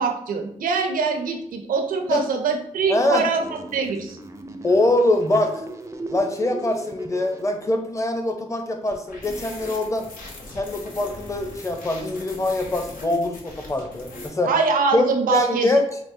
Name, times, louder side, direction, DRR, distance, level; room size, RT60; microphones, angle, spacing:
voice 1, 0.0-3.4 3.7-4.2 14.4-15.7, right 5 dB, 90° right, 4 dB, 0.5 m, -23 dB
voice 2, 2.9-3.3 4.6-5.6 6.1-10.1 10.5-14.5 14.9-15.8, left 2 dB, 20° left, 5 dB, 0.6 m, -23 dB
sound 1, 3.4-7.4, right 2 dB, 20° right, 0.4 m, -36 dB
sound 2, 8.9-14.3, left 2 dB, 85° left, 0.7 m, -40 dB
4.6 x 2.0 x 2.6 m, 0.72 s
cardioid pair, 55°, 14 cm